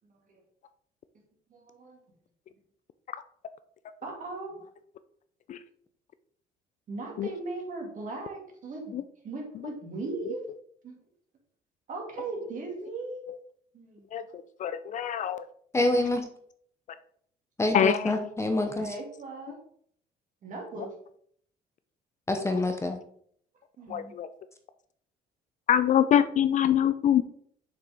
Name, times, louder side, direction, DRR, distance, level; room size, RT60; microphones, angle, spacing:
voice 1, 1.5-2.0 4.0-4.6 6.9-9.0 9.2-10.4 10.8-11.0 11.9-13.2 13.7-14.1 18.8-19.6 20.4-20.9 23.8-24.1, right 3 dB, 50° right, 1 dB, 2.4 m, -38 dB
voice 2, 14.6-15.4 17.7-18.1 23.9-24.3 25.7-27.2, left 9 dB, 50° left, 13 dB, 0.4 m, -24 dB
voice 3, 15.7-16.2 17.6-18.9 22.3-23.0, left 2 dB, 15° left, 6 dB, 0.8 m, -26 dB
6.7 x 5.7 x 3.5 m, 0.63 s
cardioid pair, 110°, 17 cm